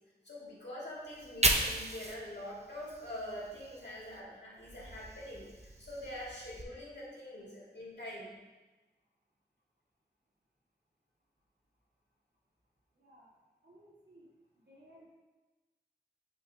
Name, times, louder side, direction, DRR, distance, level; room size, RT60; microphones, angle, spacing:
voice 1, 0.2-8.3, left 1 dB, 80° left, -6 dB, 2.1 m, -44 dB
Fire, 1.0-4.2 4.6-6.6, right 2 dB, 40° right, 0.6 m, -36 dB
voice 2, 13.6-14.2 14.7-15.1, right 1 dB, 80° right, -6 dB, 1.8 m, -59 dB
8.3 x 4.3 x 2.7 m, 1.2 s
wide cardioid pair, 50°, 18 cm